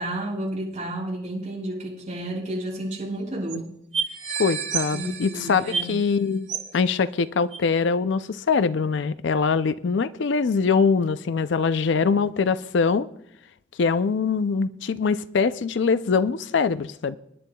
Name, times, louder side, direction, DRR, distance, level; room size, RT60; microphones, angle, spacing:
voice 1, 0.0-3.7 4.9-5.9, right 1 dB, 40° right, -4 dB, 5.4 m, -31 dB
sound 1, 2.6-2.7 2.9-3.0 3.5-3.6 3.9-6.1 6.5-6.8 7.5-7.6, right 6 dB, 80° right, 2.7 m, -30 dB
voice 2, 4.4-6.5 6.7-13.1 13.8-17.2, left 5 dB, 70° left, 14 dB, 0.4 m, -23 dB
24.5 x 11.0 x 2.3 m, 0.76 s
head